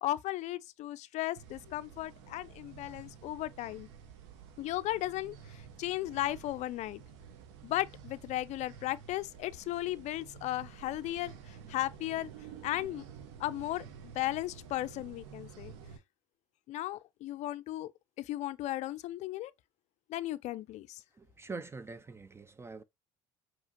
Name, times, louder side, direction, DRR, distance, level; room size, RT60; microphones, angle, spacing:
voice 1, 0.0-3.9 4.6-7.0 7.6-12.3 12.6-13.0 13.4-15.7 16.7-17.9 18.2-19.5 20.1-21.0, left 15 dB, 55° left, 0.4 m, -36 dB
sound 1, 1.4-16.0, right 7 dB, 80° right, 0.9 m, -51 dB
voice 2, 21.2-22.8, right 4 dB, 20° right, 0.3 m, -44 dB
4.8 x 3.0 x 2.6 m
supercardioid pair, 80°, 14 cm